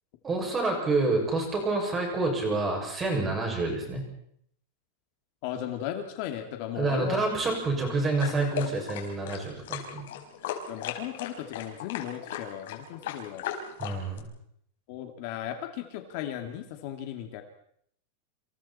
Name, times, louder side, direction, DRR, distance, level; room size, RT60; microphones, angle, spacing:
voice 1, 0.2-4.0 6.8-10.1 13.8-14.3, right 3 dB, 15° right, 1 dB, 6.8 m, -28 dB
voice 2, 5.4-7.2 10.7-13.5 14.9-17.4, left 11 dB, 45° left, 4 dB, 2.5 m, -36 dB
sound 1, 8.2-14.2, left 10 dB, 65° left, 4.9 m, -36 dB
28.5 x 27.5 x 4.4 m, 0.69 s
supercardioid pair, 175°, 0 cm